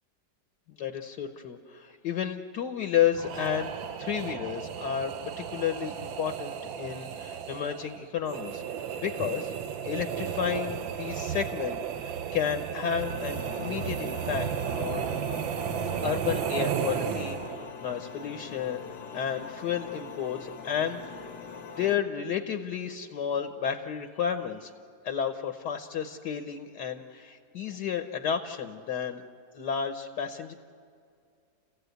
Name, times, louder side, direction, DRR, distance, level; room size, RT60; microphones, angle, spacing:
voice 1, 0.7-3.7 4.0-9.5 9.8-15.1 16.0-18.8 19.1-21.3 21.8-24.7 25.0-29.2 29.5-30.5, left 8 dB, 65° left, 6 dB, 1.5 m, -32 dB
sound 1, 3.1-17.7, right 8 dB, 90° right, 1.6 m, -34 dB
sound 2, 13.0-22.0, left 5 dB, 85° left, 1.9 m, -42 dB
29.5 x 16.0 x 8.0 m, 2.3 s
omnidirectional pair, 2.0 m